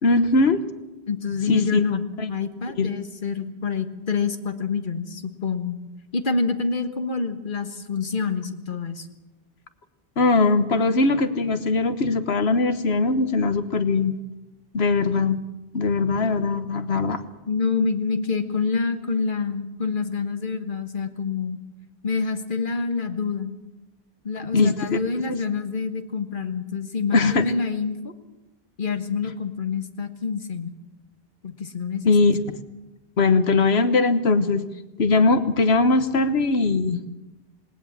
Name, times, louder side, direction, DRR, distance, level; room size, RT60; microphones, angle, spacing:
voice 1, 0.0-0.6 1.5-1.8 2.2-2.3 2.8-2.9 10.2-14.1 14.7-15.4 15.7-17.2 24.5-25.0 25.3-25.4 27.1-27.5 32.0-32.4 33.2-34.6 35.0-37.0, left 3 dB, 80° left, 11 dB, 1.5 m, -20 dB
voice 2, 1.1-5.8 6.1-9.1 17.5-21.6 22.0-23.5 24.2-28.1 28.8-30.7 31.4-32.1, left 5 dB, 55° left, 8 dB, 1.6 m, -27 dB
19.0 x 19.0 x 7.4 m, 1.0 s
omnidirectional pair, 1.1 m